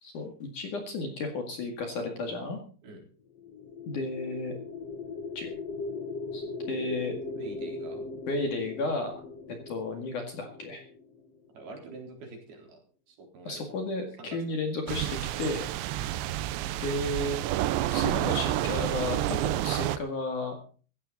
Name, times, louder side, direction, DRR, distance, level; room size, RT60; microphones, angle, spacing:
voice 1, 0.0-2.6 3.9-4.6 5.3-5.5 6.3-6.4 6.7-7.2 8.3-9.2 9.5-10.8 13.4-15.7 16.8-17.5 17.9-20.5, left 2 dB, 50° left, 4 dB, 3.0 m, -33 dB
sound 1, 3.4-11.5, left 3 dB, 70° left, 1.5 m, -39 dB
voice 2, 7.3-8.0 11.5-12.8 13.1-13.6 14.2-14.4, right 3 dB, 55° right, 2 dB, 5.6 m, -44 dB
sound 2, 14.9-20.0, right 13 dB, 80° right, 3.1 m, -29 dB
16.0 x 15.0 x 4.1 m, 0.39 s
omnidirectional pair, 5.3 m